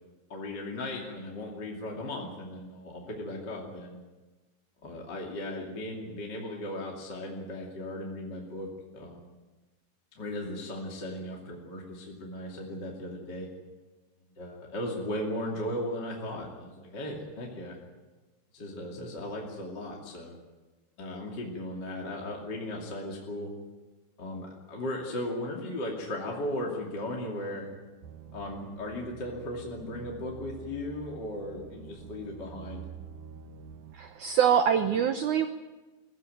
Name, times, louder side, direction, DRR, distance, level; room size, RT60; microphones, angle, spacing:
voice 1, 0.3-4.0 4.8-9.3 10.2-13.5 14.4-17.8 18.5-20.4 21.0-23.5 24.2-27.7 28.3-32.8, left 1 dB, 30° left, -1 dB, 2.7 m, -37 dB
sound 1, 28.0-34.0, right 7 dB, 65° right, 2.3 m, -47 dB
voice 2, 33.9-35.5, right 8 dB, 90° right, 8 dB, 1.7 m, -24 dB
23.0 x 15.5 x 9.2 m, 1.2 s
omnidirectional pair, 4.7 m